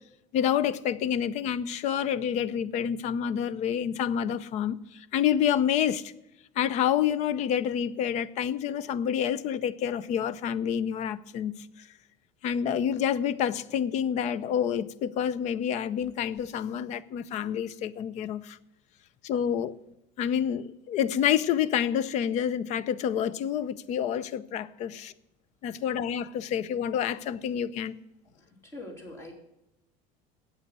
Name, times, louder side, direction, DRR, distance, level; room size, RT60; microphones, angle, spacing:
voice 1, 0.3-6.1 6.6-11.9 12.4-18.6 19.2-19.8 20.2-25.1 25.6-28.0, left 9 dB, 45° left, 0.6 m, -28 dB
voice 2, 28.3-29.3, left 1 dB, 15° left, 2.9 m, -44 dB
8.3 x 8.2 x 8.7 m
cardioid pair, 155°, 16 cm